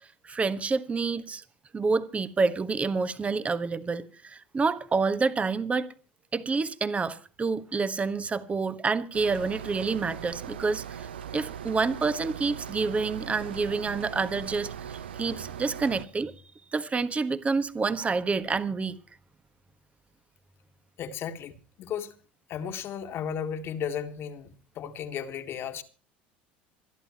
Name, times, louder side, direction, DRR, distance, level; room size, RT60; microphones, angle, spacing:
voice 1, 0.2-1.4 1.7-5.9 6.3-16.3 16.7-18.9, right 4 dB, 25° right, 1.4 m, -28 dB
sound 1, 9.1-16.1, right 8 dB, 80° right, 0.8 m, -39 dB
voice 2, 21.0-22.1 22.5-25.8, left 8 dB, 50° left, 2.1 m, -35 dB
27.0 x 11.0 x 3.0 m
hypercardioid pair, 70°, 5 cm